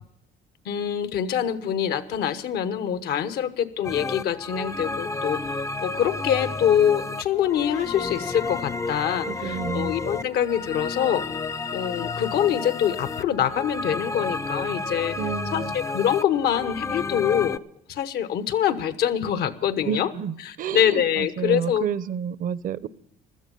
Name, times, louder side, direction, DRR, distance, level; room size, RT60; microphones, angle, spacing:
voice 1, 0.6-11.2 11.7-15.2 15.5-17.6 17.9-20.1 20.4-21.8, left 9 dB, 70° left, 1.1 m, -25 dB
sound 1, 3.8-17.6, left 3 dB, 20° left, 0.5 m, -31 dB
voice 2, 9.3-9.9 15.2-15.7 19.9-22.9, right 8 dB, 55° right, 0.7 m, -30 dB
16.0 x 13.0 x 5.3 m
cardioid pair, 110°, 17 cm